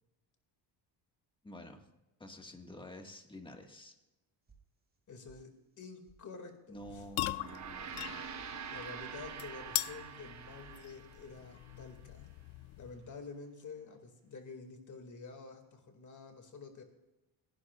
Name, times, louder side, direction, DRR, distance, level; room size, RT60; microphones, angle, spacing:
voice 1, 1.4-1.9 2.2-3.9 6.7-8.2, left 1 dB, 10° left, 3 dB, 1.7 m, -49 dB
sound 1, 4.5-5.0 5.3-5.8 6.0-6.2 6.5-7.0 7.2-7.7 8.0-8.5 8.8-9.3 9.5-10.0 10.3-10.8, right 5 dB, 20° right, 1.7 m, -63 dB
voice 2, 5.1-7.0 8.7-12.3 12.8-16.8, left 4 dB, 40° left, 5 dB, 2.3 m, -49 dB
sound 2, 6.8-13.2, left 18 dB, 80° left, 0.6 m, -42 dB
Gong, 7.3-11.9, right 7 dB, 35° right, 1.1 m, -46 dB
29.5 x 11.5 x 2.4 m, 0.99 s
cardioid pair, 130°, 47 cm